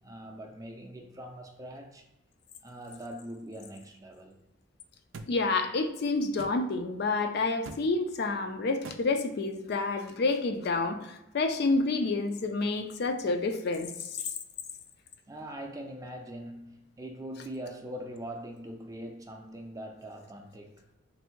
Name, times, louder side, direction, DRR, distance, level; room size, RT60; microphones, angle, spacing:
voice 1, 0.0-2.0 2.6-4.4 15.3-20.8, right 1 dB, 15° right, 0.4 m, -42 dB
sound 1, 5.1-5.3 6.4-6.5 7.6-7.8 8.8-9.0, right 3 dB, 85° right, 0.4 m, -41 dB
voice 2, 5.3-14.2, left 3 dB, 55° left, 0.4 m, -29 dB
3.4 x 2.6 x 4.4 m
head